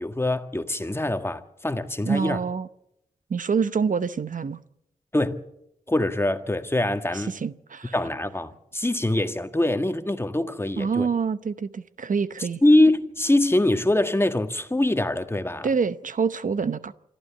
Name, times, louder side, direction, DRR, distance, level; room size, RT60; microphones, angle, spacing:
voice 1, 0.0-2.4 5.1-5.4 5.9-7.3 7.9-11.1 12.4-15.7, left 1 dB, 15° left, 1.7 m, -23 dB
voice 2, 2.1-2.7 3.3-4.6 7.1-7.9 10.8-12.6 15.6-16.9, right 5 dB, 60° right, 0.8 m, -26 dB
26.5 x 12.5 x 8.4 m
cardioid pair, 50°, 15 cm